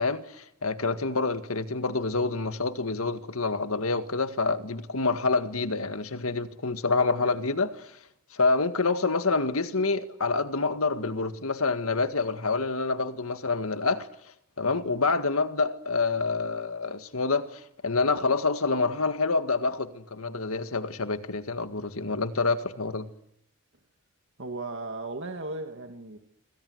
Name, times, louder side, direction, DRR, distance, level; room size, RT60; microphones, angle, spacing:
voice 1, 0.0-7.9 8.3-14.1 14.6-23.1, left 3 dB, 75° left, 1.9 m, -27 dB
voice 2, 24.4-26.2, right 2 dB, 60° right, 2.0 m, -36 dB
26.5 x 25.5 x 8.1 m
head